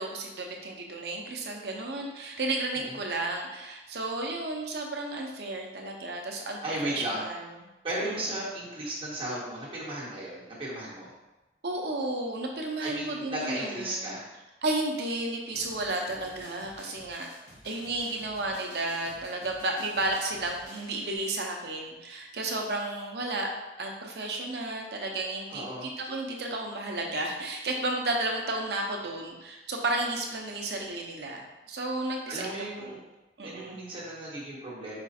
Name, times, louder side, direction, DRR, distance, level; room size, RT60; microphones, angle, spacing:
voice 1, 0.0-7.4 8.0-8.3 11.6-14.2 14.6-17.3 17.6-23.5 23.8-32.4 32.8-32.9 33.4-33.8, right 2 dB, 70° right, 1 dB, 0.7 m, -33 dB
voice 2, 6.6-7.2 7.8-11.1 12.8-14.2 25.5-25.9 32.3-33.0 33.4-35.0, right 1 dB, 30° right, -7 dB, 1.4 m, -35 dB
sound 1, 15.5-21.2, left 1 dB, 60° left, 1.5 m, -51 dB
5.0 x 2.4 x 4.2 m, 1.0 s
head